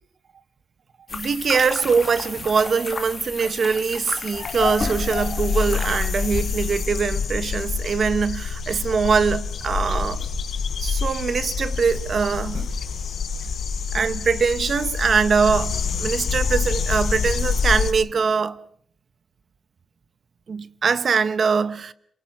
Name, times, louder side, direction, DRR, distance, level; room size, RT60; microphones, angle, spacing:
sound 1, 1.1-8.1, left 3 dB, 25° left, 1.7 m, -34 dB
voice 1, 1.1-10.3 10.8-12.7 13.9-18.6 20.5-21.9, right 5 dB, 45° right, 0.9 m, -22 dB
sound 2, 4.3-17.9, left 5 dB, 65° left, 4.1 m, -26 dB
27.5 x 25.0 x 5.6 m
wide cardioid pair, 170°, 0 cm